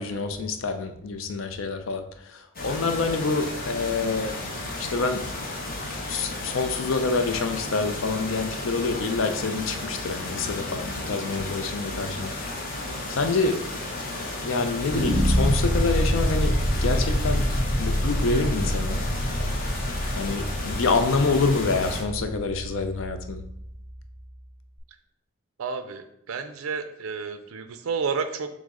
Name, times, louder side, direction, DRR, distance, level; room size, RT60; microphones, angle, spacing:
voice 1, 0.0-4.3 4.8-5.2 6.1-12.3 13.1-13.6 14.4-16.5 16.8-17.4 17.8-19.0 20.2-23.4, left 3 dB, 65° left, 7 dB, 0.5 m, -27 dB
sound 1, 2.5-22.0, left 2 dB, 45° left, 0.9 m, -33 dB
sound 2, 14.9-24.0, equal, 5° right, 0.4 m, -26 dB
voice 2, 25.6-28.5, right 5 dB, 85° right, 9 dB, 0.4 m, -31 dB
6.2 x 2.1 x 3.7 m, 0.78 s
head